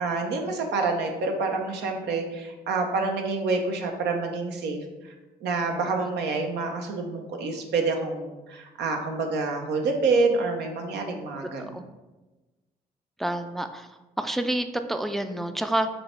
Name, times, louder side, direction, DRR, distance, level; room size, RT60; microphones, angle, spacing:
voice 1, 0.0-5.1 5.4-11.8, right 3 dB, 85° right, 3 dB, 0.7 m, -27 dB
voice 2, 13.2-13.9 14.2-15.9, right 1 dB, ahead, 8 dB, 0.3 m, -28 dB
5.1 x 2.2 x 4.3 m, 1.1 s
supercardioid pair, 55°, 17 cm